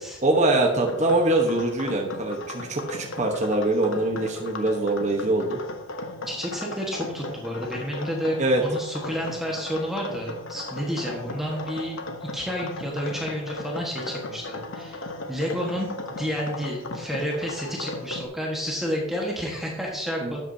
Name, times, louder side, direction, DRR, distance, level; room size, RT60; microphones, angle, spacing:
voice 1, 0.2-5.6 8.4-8.6 20.2-20.3, right 2 dB, 35° right, 1 dB, 1.1 m, -23 dB
sound 1, 0.9-18.2, left 2 dB, 65° left, 0.9 m, -37 dB
voice 2, 6.3-20.4, equal, ahead, -2 dB, 1.4 m, -30 dB
12.0 x 8.2 x 2.8 m, 0.92 s
head